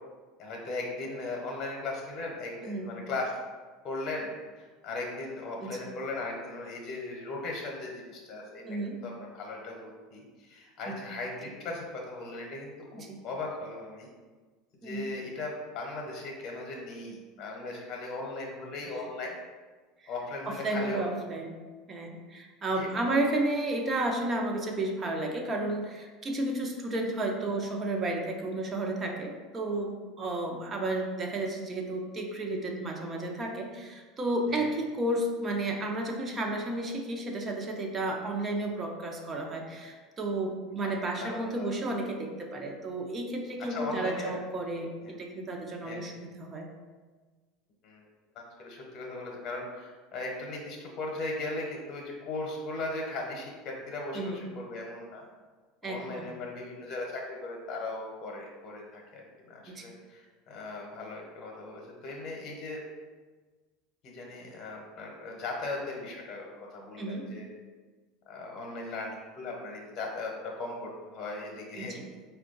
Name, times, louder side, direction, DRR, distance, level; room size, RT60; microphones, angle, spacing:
voice 1, 0.4-3.3 3.8-4.3 4.6-14.1 14.8-19.4 20.1-21.0 22.7-23.2 34.5-34.6 40.8-40.9 41.2-41.7 43.6-44.4 45.0-45.2 45.8-46.1 47.8-48.0 48.3-55.2 55.8-62.8 64.0-67.5 68.3-72.0, left 2 dB, 45° left, 0 dB, 0.9 m, -38 dB
voice 2, 2.6-2.9 5.6-5.8 8.6-9.0 10.9-11.0 12.9-13.2 14.8-15.1 20.5-21.6 21.9-46.7 54.1-54.4 55.8-56.3 59.7-59.9 67.0-67.3 71.8-72.0, right 2 dB, 30° right, 2 dB, 0.7 m, -32 dB
4.4 x 2.3 x 3.8 m, 1.4 s
supercardioid pair, 105°, 0 cm